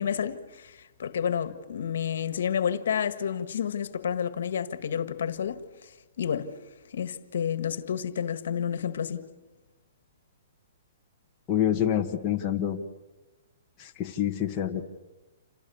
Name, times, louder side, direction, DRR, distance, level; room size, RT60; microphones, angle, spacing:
voice 1, 0.0-5.9 6.2-6.5 6.9-9.3, left 8 dB, 70° left, 1.7 m, -30 dB
voice 2, 11.5-12.8 13.8-14.8, left 10 dB, 20° left, 1.5 m, -27 dB
29.0 x 28.0 x 7.1 m
hypercardioid pair, 170°, 0 cm